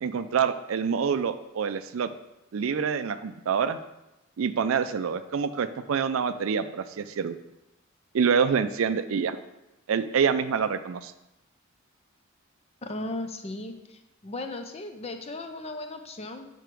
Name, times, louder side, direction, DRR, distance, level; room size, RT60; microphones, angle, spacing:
voice 1, 0.0-2.1 2.5-3.8 4.4-7.4 8.1-9.4 9.9-11.1, right 6 dB, 80° right, 12 dB, 0.4 m, -26 dB
voice 2, 12.8-16.5, left 2 dB, 30° left, 6 dB, 0.6 m, -36 dB
6.9 x 4.5 x 4.6 m, 0.93 s
head